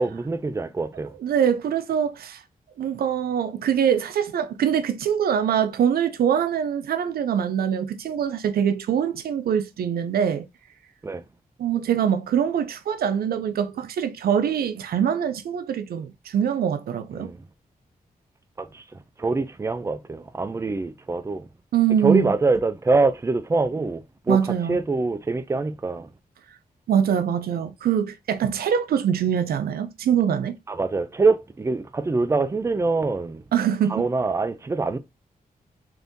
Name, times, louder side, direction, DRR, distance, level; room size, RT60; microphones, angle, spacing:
voice 1, 0.0-1.1 11.0-11.2 17.1-17.4 18.6-18.8 19.2-21.5 22.0-24.4 24.7-26.1 30.7-33.4 33.9-35.0, right 3 dB, 20° right, 0.3 m, -24 dB
voice 2, 1.2-2.4 2.8-10.5 11.6-17.3 21.7-22.3 24.3-24.8 26.9-30.6 33.5-34.1, right 8 dB, 85° right, 0.4 m, -23 dB
3.5 x 2.6 x 2.6 m
cardioid pair, 85°, 15 cm